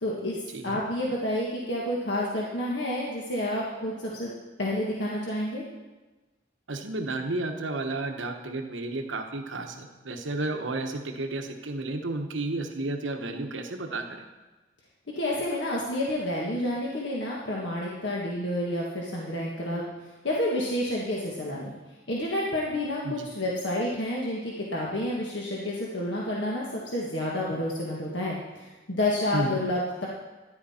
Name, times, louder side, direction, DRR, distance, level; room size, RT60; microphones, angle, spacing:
voice 1, 0.0-0.4 0.6-4.3 4.6-5.6 15.1-19.9 20.2-21.7 22.1-30.1, left 1 dB, 75° left, -4 dB, 1.6 m, -29 dB
voice 2, 6.7-14.3 23.0-23.3 29.3-29.6, right 2 dB, 90° right, 4 dB, 1.1 m, -32 dB
13.5 x 10.5 x 4.3 m, 1.2 s
head